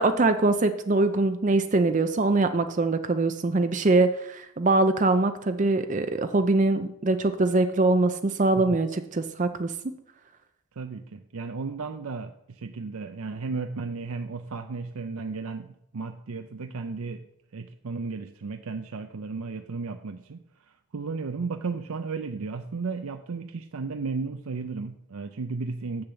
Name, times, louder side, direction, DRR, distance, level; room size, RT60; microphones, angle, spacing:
voice 1, 0.0-9.7, right 2 dB, 35° right, 8 dB, 0.5 m, -23 dB
voice 2, 10.7-17.2 17.5-26.0, right 4 dB, 80° right, 7 dB, 0.5 m, -34 dB
7.9 x 6.9 x 6.9 m, 0.79 s
head